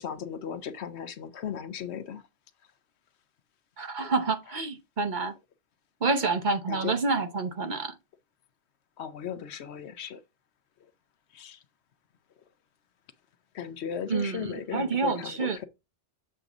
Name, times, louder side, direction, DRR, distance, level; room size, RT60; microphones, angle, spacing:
voice 1, 0.0-2.2 6.7-7.0 9.0-10.2 11.3-11.6 13.5-15.6, left 8 dB, 70° left, 0.9 m, -36 dB
voice 2, 3.8-5.3 6.0-8.0 14.1-15.6, right 4 dB, 45° right, 0.8 m, -28 dB
7.6 x 2.6 x 5.9 m
omnidirectional pair, 1.2 m